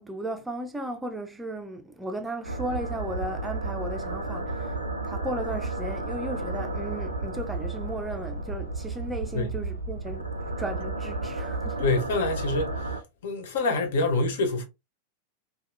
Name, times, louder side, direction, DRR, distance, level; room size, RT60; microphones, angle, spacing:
voice 1, 0.0-4.8 5.0-10.3 10.6-11.8, right 1 dB, 10° right, 0.4 m, -35 dB
sound 1, 2.4-13.0, right 2 dB, 85° right, 0.4 m, -32 dB
voice 2, 11.8-12.9 13.2-14.6, left 2 dB, 55° left, 0.6 m, -26 dB
2.7 x 2.2 x 2.3 m
figure-of-eight pair, 90°, 0 cm